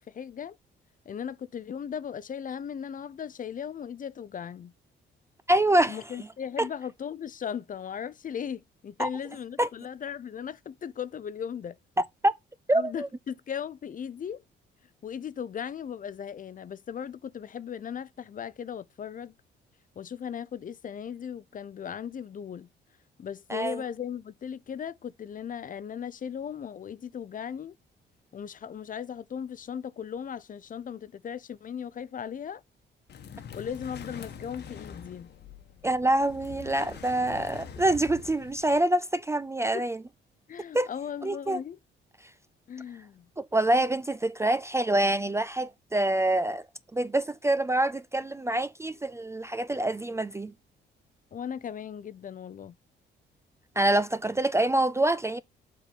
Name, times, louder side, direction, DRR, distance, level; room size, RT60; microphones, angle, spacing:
voice 1, 0.1-0.6 1.1-4.7 5.9-11.8 12.7-14.4 15.0-19.3 20.0-22.7 23.2-27.7 28.3-32.6 33.5-35.3 39.7-39.8 40.5-41.8 42.7-43.3 51.3-52.7, left 8 dB, 40° left, 0.6 m, -37 dB
voice 2, 5.5-6.0 6.6-6.7 9.0-9.1 9.6-9.7 12.2-12.3 12.7-13.1 23.5-23.8 35.8-40.0 40.7-40.9 41.2-41.6 43.4-46.6 46.9-50.5 53.8-55.4, right 1 dB, 15° right, 0.4 m, -26 dB
sound 1, 33.1-38.8, left 7 dB, 60° left, 1.2 m, -44 dB
7.4 x 3.8 x 5.3 m
cardioid pair, 90°, 20 cm